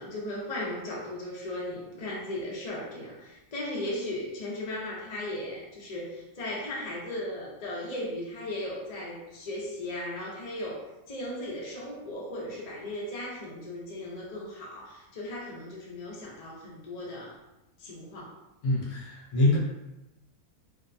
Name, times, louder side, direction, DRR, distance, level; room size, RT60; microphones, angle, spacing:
voice 1, 0.0-17.3 17.8-18.4, left 1 dB, 45° left, -4 dB, 0.5 m, -37 dB
voice 2, 18.6-19.6, left 2 dB, 70° left, -4 dB, 1.1 m, -25 dB
2.7 x 2.1 x 2.5 m, 0.94 s
omnidirectional pair, 1.5 m